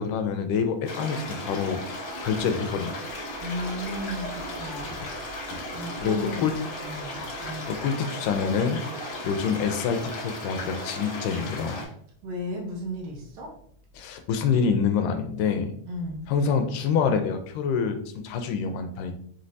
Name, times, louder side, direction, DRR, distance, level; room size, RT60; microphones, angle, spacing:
voice 1, 0.0-1.8 2.2-3.0 5.5-5.6 6.0-6.5 7.7-8.8 9.2-11.9 14.0-15.7 16.3-19.1, left 6 dB, 85° left, 7 dB, 2.1 m, -26 dB
sound 1, 0.8-11.8, left 1 dB, 60° left, 1.4 m, -36 dB
voice 2, 3.4-5.0 5.7-7.7 12.2-13.5 15.9-16.2, equal, 75° right, -1 dB, 1.5 m, -34 dB
5.6 x 3.2 x 2.6 m, 0.62 s
omnidirectional pair, 3.8 m